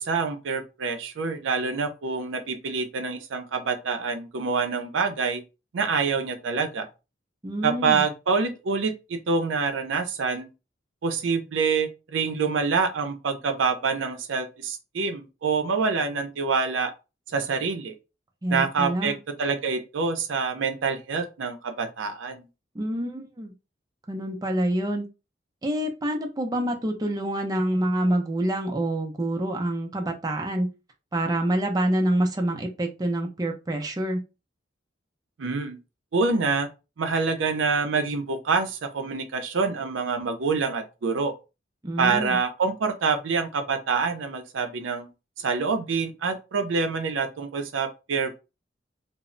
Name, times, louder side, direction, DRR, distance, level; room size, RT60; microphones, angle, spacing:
voice 1, 0.0-5.4 5.7-6.9 7.6-10.5 11.0-16.9 17.3-17.9 18.5-19.1 19.4-22.4 35.4-35.8 36.1-36.7 37.0-41.3 42.0-45.1 45.4-48.4, right 4 dB, 80° right, 0.5 m, -26 dB
voice 2, 7.4-8.0 18.4-19.2 22.7-23.5 24.1-25.1 25.6-30.7 31.1-34.2 41.8-42.4, right 1 dB, 20° right, 0.4 m, -27 dB
2.0 x 2.0 x 3.7 m
head